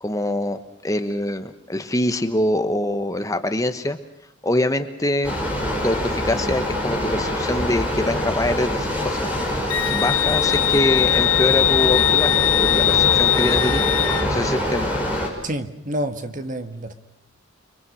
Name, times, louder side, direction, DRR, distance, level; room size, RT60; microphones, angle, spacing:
voice 1, 0.0-4.0 4.4-5.3 5.8-9.6 9.9-13.8 14.2-14.9, left 1 dB, 15° left, 1.2 m, -24 dB
sound 1, 5.2-15.3, left 1 dB, 10° right, 6.2 m, -24 dB
Wind instrument woodwind instrument, 9.7-14.3, left 13 dB, 80° left, 0.8 m, -20 dB
voice 2, 15.4-16.9, right 1 dB, 40° right, 1.7 m, -28 dB
30.0 x 22.5 x 6.4 m
head